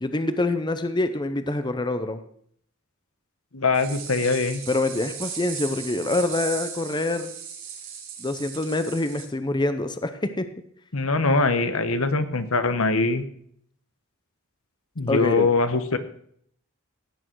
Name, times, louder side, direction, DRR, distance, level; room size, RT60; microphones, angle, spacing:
voice 1, 0.0-2.2 4.7-7.3 8.2-10.5 15.1-15.5, left 2 dB, 20° left, 10 dB, 0.7 m, -26 dB
voice 2, 3.5-4.6 10.9-13.2 15.0-16.0, left 3 dB, 80° left, 10 dB, 1.2 m, -22 dB
sound 1, 3.7-9.2, right 7 dB, 85° right, 4.9 m, -37 dB
17.0 x 8.9 x 4.7 m, 0.65 s
head